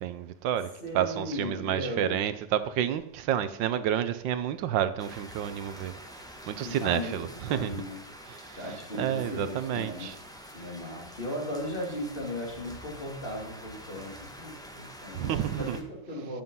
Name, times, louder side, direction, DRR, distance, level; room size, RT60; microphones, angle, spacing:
voice 1, 0.0-0.7 0.9-5.9 6.5-7.7 8.3-8.6 9.0-10.1 15.1-15.8, right 10 dB, 80° right, 1.4 m, -29 dB
voice 2, 0.8-2.2 6.6-8.0 8.6-10.1 10.4-16.4, left 1 dB, 30° left, 2.8 m, -37 dB
sound 1, 5.0-15.8, equal, 5° left, 1.0 m, -47 dB
10.5 x 7.7 x 5.5 m
omnidirectional pair, 2.0 m